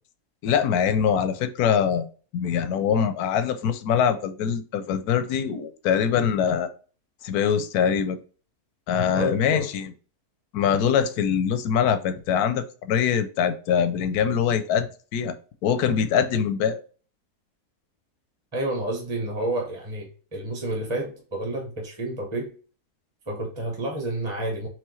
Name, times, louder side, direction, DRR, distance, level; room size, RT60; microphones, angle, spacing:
voice 1, 0.4-2.1 2.3-6.7 7.2-8.2 8.9-9.9 10.5-15.3 15.6-16.8, left 8 dB, 80° left, 11 dB, 1.1 m, -23 dB
voice 2, 9.1-9.7 18.5-22.5 23.3-24.7, right 1 dB, 20° right, 0 dB, 0.9 m, -30 dB
4.7 x 3.2 x 3.0 m, 0.39 s
omnidirectional pair, 1.6 m